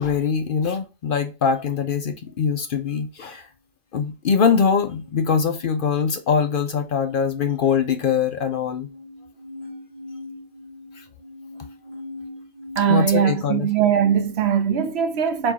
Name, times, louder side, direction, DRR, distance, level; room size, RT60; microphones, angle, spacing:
voice 1, 0.0-3.5 3.9-8.9 11.0-11.1 12.9-13.7, left 6 dB, 55° left, 0.7 m, -22 dB
sound 1, 4.9-14.5, left 2 dB, 40° left, 2.4 m, -42 dB
voice 2, 12.8-15.5, right 8 dB, 70° right, 0.9 m, -20 dB
4.5 x 2.4 x 4.1 m
omnidirectional pair, 1.2 m